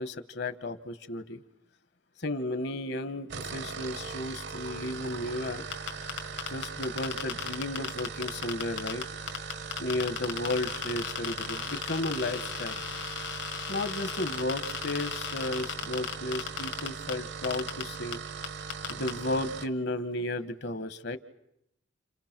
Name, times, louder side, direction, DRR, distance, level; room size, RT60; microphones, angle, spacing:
voice 1, 0.0-1.4 2.2-5.6 6.5-9.0 9.8-12.8 13.7-18.2 18.9-21.2, left 1 dB, 60° left, 13 dB, 1.2 m, -33 dB
sound 1, 3.2-19.7, right 5 dB, 65° right, 0.9 m, -40 dB
sound 2, 5.7-9.0 9.3-17.1 17.4-17.8 18.1-18.2 18.4-19.1, left 8 dB, 80° left, 2.0 m, -35 dB
30.0 x 28.0 x 6.0 m, 0.82 s
head